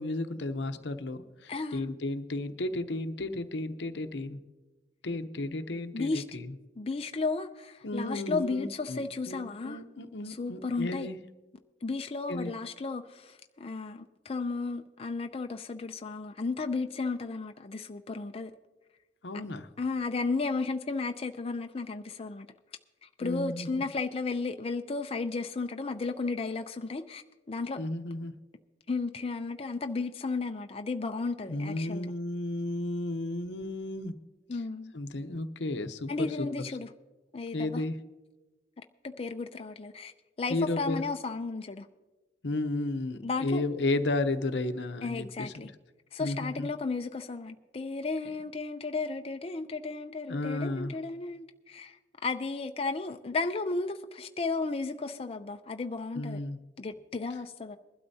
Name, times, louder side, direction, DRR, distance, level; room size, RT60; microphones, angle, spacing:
voice 1, 0.0-4.4 5.0-6.5 7.8-11.2 12.3-12.5 19.2-19.7 23.2-23.8 27.8-28.3 31.5-34.1 34.5-34.6 34.9-36.7 37.5-38.0 40.5-41.0 42.4-45.7 46.2-46.7 50.3-50.9 56.1-56.6, left 2 dB, 80° left, 9 dB, 0.8 m, -33 dB
voice 2, 1.5-1.9 5.9-6.2 6.8-9.8 10.3-11.1 11.8-18.5 19.8-22.5 23.0-27.2 27.5-27.8 28.9-32.1 34.5-34.9 36.1-36.9 37.3-37.8 39.0-40.1 40.4-41.9 43.2-43.6 45.0-45.7 46.1-52.0 52.2-56.4 56.8-57.8, left 3 dB, 35° left, 6 dB, 0.5 m, -34 dB
21.0 x 12.0 x 2.8 m, 1.2 s
head